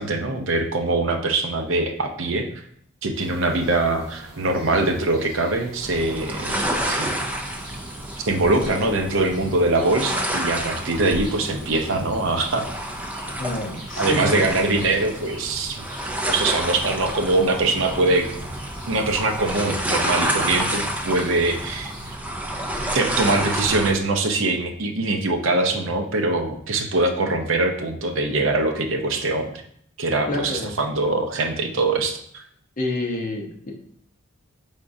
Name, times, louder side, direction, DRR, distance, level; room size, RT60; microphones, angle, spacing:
voice 1, 0.0-2.4 3.0-7.1 8.2-12.6 14.0-15.8 16.3-18.3 18.9-22.2 22.9-29.5 30.0-32.4, right 2 dB, 65° right, 4 dB, 0.6 m, -23 dB
sound 1, 3.1-22.2, right 1 dB, 25° right, 1.6 m, -44 dB
sound 2, 5.8-23.9, right 1 dB, 5° right, 0.3 m, -29 dB
voice 2, 13.4-14.7 30.3-30.8 32.8-33.7, left 2 dB, 40° left, 1 dB, 0.8 m, -28 dB
4.6 x 3.6 x 2.6 m, 0.66 s
head